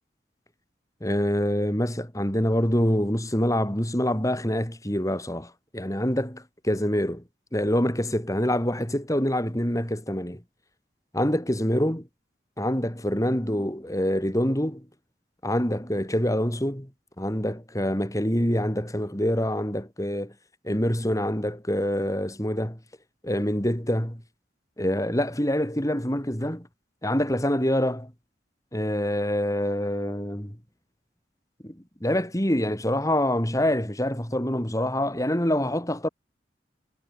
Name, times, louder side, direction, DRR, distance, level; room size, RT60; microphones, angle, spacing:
voice 1, 1.0-7.2 7.5-10.4 11.1-12.1 12.6-14.9 15.4-16.9 17.2-20.3 20.6-22.8 23.2-24.2 24.8-26.7 27.0-28.1 28.7-30.6 31.6-36.1, equal, 20° left, 5.8 m, -26 dB
head